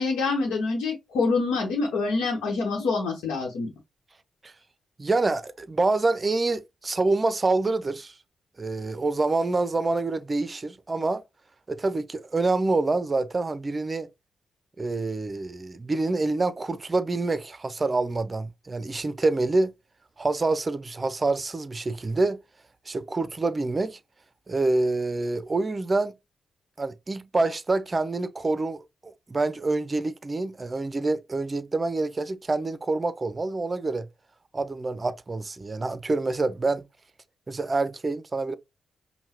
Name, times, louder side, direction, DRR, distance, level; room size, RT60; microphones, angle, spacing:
voice 1, 0.0-3.7, left 4 dB, 75° left, 1.0 m, -26 dB
voice 2, 5.0-8.1 8.6-11.2 11.7-14.1 14.8-19.7 20.2-22.4 22.9-24.0 24.5-26.1 26.8-34.1 34.5-36.8 37.5-38.6, right 3 dB, 35° right, 0.5 m, -26 dB
5.5 x 2.2 x 2.9 m
hypercardioid pair, 40°, 0 cm